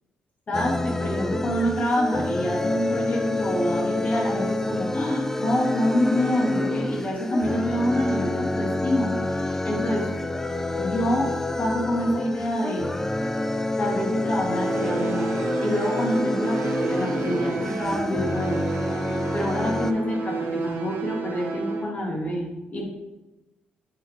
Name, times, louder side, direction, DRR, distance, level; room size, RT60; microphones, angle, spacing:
voice 1, 0.5-10.1 10.8-12.9 13.8-18.6 19.3-22.8, left 1 dB, 40° left, -1 dB, 2.0 m, -27 dB
sound 1, 0.5-19.9, left 1 dB, 10° left, 0.3 m, -28 dB
sound 2, 14.5-21.8, right 4 dB, 65° right, 1.0 m, -31 dB
7.3 x 4.2 x 3.5 m, 1.0 s
supercardioid pair, 70°, 4 cm